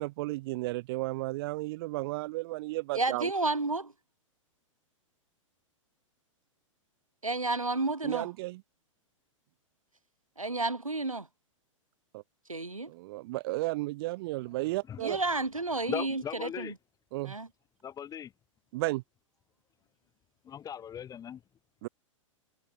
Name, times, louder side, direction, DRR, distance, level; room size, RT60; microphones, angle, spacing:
voice 1, 0.0-3.3 8.0-8.6 12.1-12.2 12.9-15.2 17.1-17.4 18.7-19.0 21.8-21.9, right 20 dB, 45° right, 1.7 m, -33 dB
voice 2, 2.9-3.9 7.2-8.3 10.4-11.3 12.5-12.9 15.0-16.7 17.2-17.5, right 2 dB, 90° right, 2.1 m, -31 dB
voice 3, 15.9-16.7 17.8-18.3 20.4-21.4, left 9 dB, 20° left, 4.7 m, -38 dB
figure-of-eight pair, 105°, 17 cm